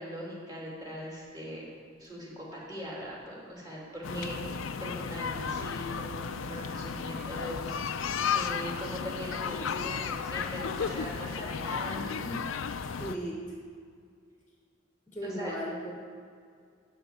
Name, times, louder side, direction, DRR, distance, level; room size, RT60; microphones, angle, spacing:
voice 1, 0.0-1.7 2.0-4.5 4.8-12.4 15.2-15.5, equal, 20° right, -5 dB, 2.9 m, -40 dB
sound 1, 0.8-11.5, equal, 60° right, 2.1 m, -56 dB
sound 2, 4.0-13.2, left 6 dB, 90° left, 0.5 m, -34 dB
voice 2, 4.1-4.6 12.8-13.6 15.1-15.9, right 1 dB, 10° left, -1 dB, 1.2 m, -37 dB
13.0 x 4.4 x 8.4 m, 2.2 s
head